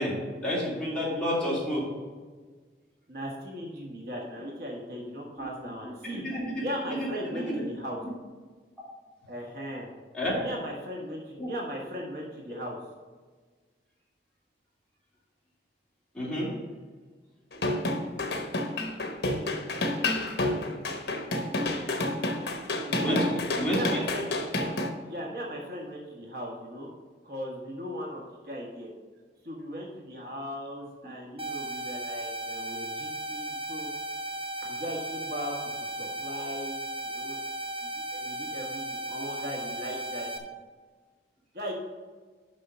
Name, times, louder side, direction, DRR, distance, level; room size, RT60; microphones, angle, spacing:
voice 1, 0.0-1.9 6.0-6.6 7.0-7.6 8.0-8.1 10.1-10.4 11.4-11.5 16.1-16.5 23.0-23.3 23.6-23.9, equal, 5° left, -8 dB, 2.9 m, -30 dB
voice 2, 3.1-6.2 6.5-8.0 9.3-9.9 10.4-12.8 22.9-23.2 23.7-24.7 25.0-26.9 27.2-28.9 29.4-33.9 34.6-36.8 37.0-37.4 37.8-40.5 41.5-41.7, equal, 60° right, -2 dB, 1.5 m, -38 dB
sound 1, 17.5-24.9, left 2 dB, 65° left, 1.0 m, -29 dB
sound 2, 31.4-40.4, right 1 dB, 35° right, 0.8 m, -36 dB
6.5 x 5.7 x 6.6 m, 1.4 s
head